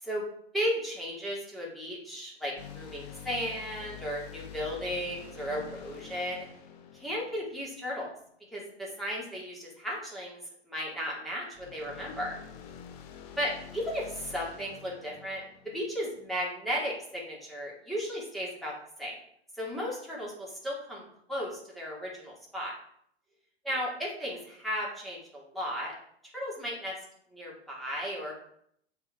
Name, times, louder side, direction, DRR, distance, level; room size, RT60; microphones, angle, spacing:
voice 1, 0.5-6.5 6.9-8.1 8.5-10.4 10.7-12.4 13.4-18.7 19.0-19.2 19.6-22.7 23.6-25.9 26.3-26.9 27.3-28.4, equal, ahead, -5 dB, 2.4 m, -35 dB
sound 1, 2.6-8.0 11.5-16.3, left 8 dB, 40° left, 1.0 m, -47 dB
6.8 x 4.7 x 4.9 m, 0.68 s
figure-of-eight pair, 100°, 31 cm